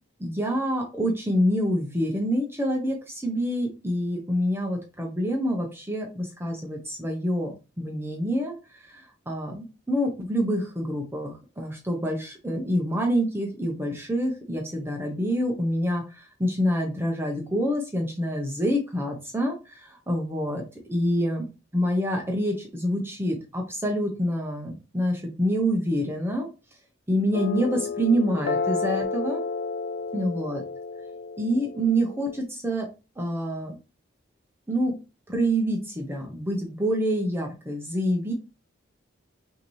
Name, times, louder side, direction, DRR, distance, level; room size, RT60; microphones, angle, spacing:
voice 1, 0.2-20.6 20.9-21.4 21.7-26.5 27.1-29.4 30.1-30.6 31.4-32.9 33.2-33.8 34.7-35.0 35.3-38.3, equal, 10° right, 1 dB, 0.7 m, -27 dB
sound 1, 27.3-32.4, left 4 dB, 55° left, 0.3 m, -31 dB
5.7 x 2.7 x 3.0 m, 0.30 s
head